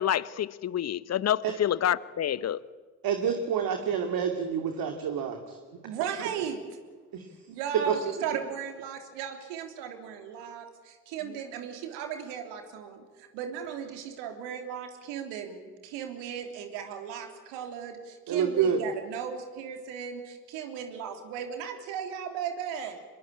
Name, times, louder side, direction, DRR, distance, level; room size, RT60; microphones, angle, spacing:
voice 1, 0.0-2.6, left 10 dB, 35° left, 19 dB, 1.0 m, -28 dB
voice 2, 3.0-5.6 6.2-6.3 7.1-7.3 7.9-8.0 18.3-18.8, right 7 dB, 50° right, 5 dB, 2.5 m, -28 dB
voice 3, 5.8-6.6 7.5-23.0, right 8 dB, 65° right, 5 dB, 3.4 m, -36 dB
25.5 x 22.0 x 8.7 m, 1.5 s
figure-of-eight pair, 55°, 45 cm